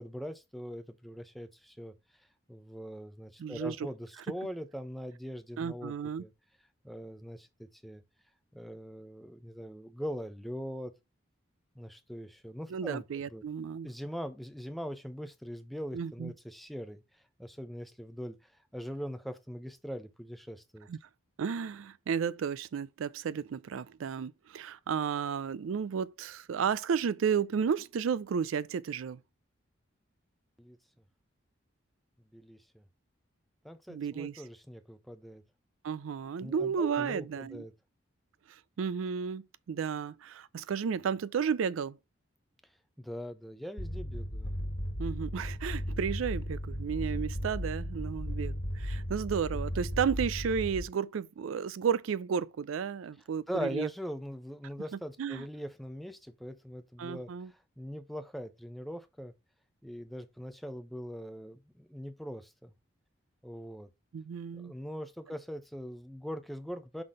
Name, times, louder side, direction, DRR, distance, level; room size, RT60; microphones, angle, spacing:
voice 1, 0.0-1.9 2.5-6.3 6.8-8.0 8.5-10.9 11.7-13.0 13.3-13.4 13.8-17.0 17.4-20.9 30.6-30.8 32.3-32.8 33.6-35.4 36.4-37.7 43.0-44.5 53.5-59.3 59.8-62.7 63.4-63.9 64.5-67.0, equal, ahead, 0.6 m, -41 dB
voice 2, 3.4-3.7 5.6-6.2 12.7-13.9 15.9-16.3 20.9-21.0 21.4-29.2 33.9-34.4 35.8-37.6 38.5-42.0 45.0-53.9 55.2-55.5 57.0-57.5 64.1-64.7, right 7 dB, 85° right, 0.4 m, -33 dB
sound 1, 43.8-50.8, equal, 70° left, 1.8 m, -35 dB
5.8 x 3.8 x 4.8 m
head